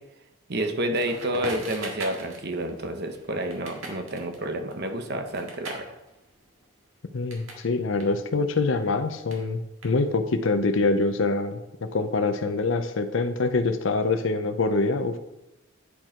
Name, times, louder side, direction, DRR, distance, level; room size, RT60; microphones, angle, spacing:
voice 1, 0.5-5.9, right 1 dB, 50° right, 5 dB, 0.9 m, -29 dB
Crackle, 1.0-7.7 7.9-10.4, right 2 dB, 75° right, 1.8 m, -41 dB
voice 2, 7.1-15.2, left 3 dB, 65° left, 10 dB, 0.6 m, -25 dB
10.0 x 4.6 x 4.4 m, 0.92 s
head